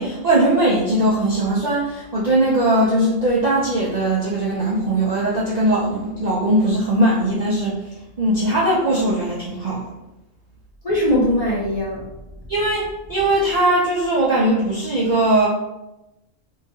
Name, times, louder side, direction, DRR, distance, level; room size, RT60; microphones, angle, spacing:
voice 1, 0.0-7.8 8.2-9.9 12.5-15.5, right 1 dB, 55° right, -8 dB, 0.4 m, -19 dB
voice 2, 10.8-12.1, equal, 45° left, -8 dB, 0.5 m, -20 dB
2.7 x 2.3 x 2.6 m, 0.95 s
omnidirectional pair, 1.3 m